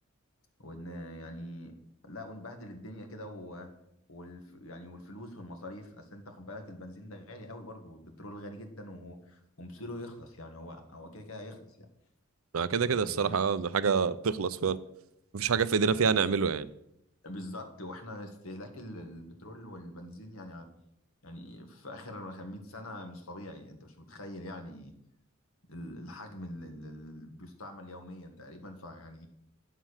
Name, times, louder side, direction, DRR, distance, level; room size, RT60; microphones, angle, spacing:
voice 1, 0.6-1.7 2.0-3.7 4.1-11.9 12.9-13.4 15.8-16.2 17.2-20.7 21.2-24.9 25.7-29.3, left 1 dB, 85° left, 1.8 m, -44 dB
voice 2, 12.5-14.8 15.3-16.7, right 5 dB, 85° right, 0.6 m, -27 dB
9.3 x 7.5 x 6.5 m
head